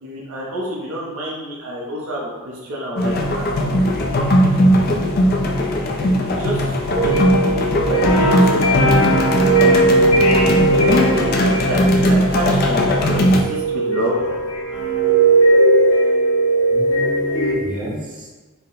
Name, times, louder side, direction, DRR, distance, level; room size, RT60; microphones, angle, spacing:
voice 1, 0.0-3.8 6.2-6.7 7.0-7.4 7.9-8.9 10.6-11.8 12.3-14.3, equal, 75° right, -4 dB, 0.7 m, -27 dB
sound 1, 3.0-13.4, equal, 45° left, 0.4 m, -18 dB
voice 2, 4.6-4.9 16.7-18.3, right 1 dB, 35° right, -5 dB, 0.9 m, -31 dB
sound 2, 6.9-12.8 13.2-17.5, right 1 dB, 90° left, 0.7 m, -17 dB
4.2 x 2.1 x 3.8 m, 1.3 s
head